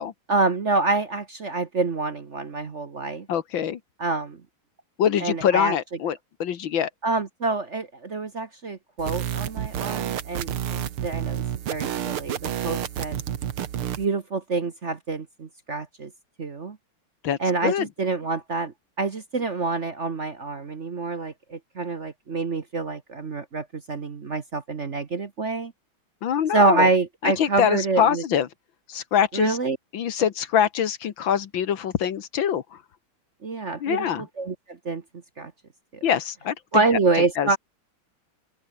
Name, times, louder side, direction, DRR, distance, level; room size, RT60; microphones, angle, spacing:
voice 1, 0.3-3.3 4.0-4.4 5.2-5.7 7.0-13.2 14.0-16.1 16.4-16.8 17.4-25.7 26.5-28.2 29.3-29.8 33.4-35.0 35.4-35.5 36.7-37.6, right 3 dB, 40° right, 1.4 m, -26 dB
voice 2, 3.3-3.8 5.0-6.9 17.2-17.9 26.2-26.9 27.2-28.5 28.9-29.6 29.9-32.6 33.8-34.2 36.0-36.6 37.4-37.6, left 9 dB, 65° left, 1.9 m, -24 dB
sound 1, 9.0-14.0, right 10 dB, 80° right, 2.2 m, -30 dB
open air
omnidirectional pair, 2.4 m